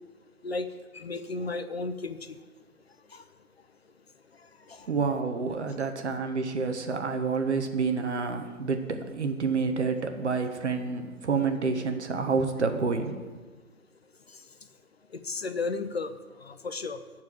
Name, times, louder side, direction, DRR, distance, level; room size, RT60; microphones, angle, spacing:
voice 1, 0.9-2.3 3.1-3.2 4.7-4.9 15.2-16.1 16.4-17.0, left 3 dB, 45° left, 10 dB, 0.6 m, -33 dB
voice 2, 4.9-13.2, right 4 dB, 50° right, 6 dB, 1.2 m, -28 dB
13.5 x 4.7 x 7.8 m, 1.3 s
figure-of-eight pair, 145°, 44 cm